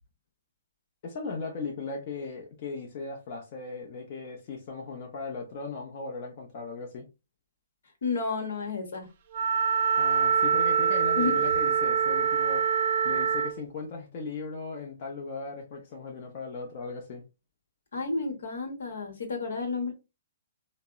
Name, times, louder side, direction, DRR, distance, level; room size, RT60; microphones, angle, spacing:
voice 1, 1.0-7.0 10.0-12.6 13.0-17.2, left 4 dB, 45° left, 0.6 m, -37 dB
voice 2, 8.0-9.1 11.2-11.3 17.9-19.9, left 4 dB, 75° left, 1.0 m, -31 dB
Wind instrument woodwind instrument, 9.3-13.6, right 7 dB, 50° right, 0.4 m, -25 dB
3.4 x 2.0 x 2.3 m
hypercardioid pair, 135°, 0 cm